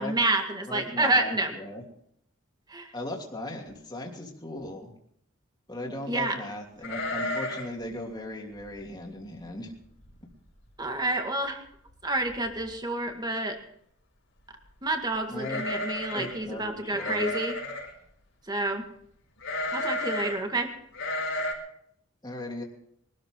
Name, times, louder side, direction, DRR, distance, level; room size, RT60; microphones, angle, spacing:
voice 1, 0.0-1.5 2.7-2.9 6.1-6.4 10.8-11.6 12.0-13.6 14.8-17.5 18.5-18.8 19.7-20.7, right 2 dB, 20° right, 4 dB, 2.1 m, -28 dB
voice 2, 0.7-1.8 2.9-4.9 5.7-9.7 15.3-15.6 16.1-17.3 22.2-22.6, left 1 dB, 20° left, 0 dB, 3.0 m, -37 dB
sound 1, 6.8-7.8 8.0-8.1 8.6-8.9 9.4-9.5 9.8-10.3 10.7-10.8 11.9-12.0 12.3-12.7 15.4-16.4 17.0-17.9 19.4-20.4 20.9-21.5, left 1 dB, 75° left, 4.9 m, -32 dB
23.5 x 13.0 x 3.9 m, 0.70 s
head